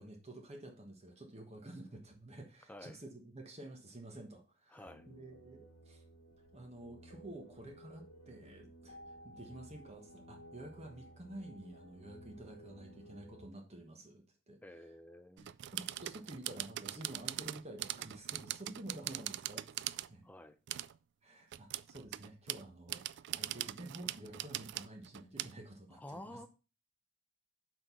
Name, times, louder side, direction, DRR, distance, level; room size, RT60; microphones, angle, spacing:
voice 1, 0.0-6.0 6.5-9.0 9.2-14.9 15.4-20.2 21.2-26.4, right 1 dB, 35° right, 1.2 m, -50 dB
voice 2, 4.7-5.0 14.6-15.5 20.2-20.6 26.0-26.5, left 1 dB, 10° left, 0.6 m, -50 dB
sound 1, 4.8-13.4, right 1 dB, 70° left, 1.2 m, -56 dB
sound 2, 15.4-20.1 20.7-20.9 21.5-25.5, right 14 dB, 60° right, 0.3 m, -41 dB
6.2 x 4.6 x 5.5 m
head